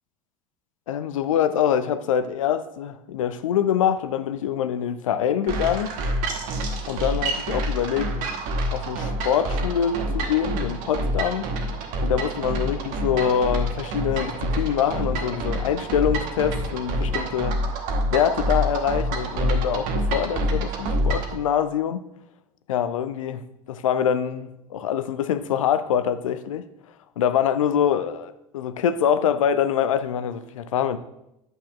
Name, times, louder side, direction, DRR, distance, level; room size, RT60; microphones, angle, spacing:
voice 1, 0.9-5.9 6.9-8.2 8.7-11.5 12.0-17.6 18.1-22.0 22.7-23.4 23.7-26.6 27.2-31.0, left 9 dB, 65° left, 0.6 m, -24 dB
sound 1, 5.5-21.4, right 1 dB, 50° right, 1.2 m, -27 dB
10.5 x 8.3 x 2.4 m
figure-of-eight pair, 75°, 18 cm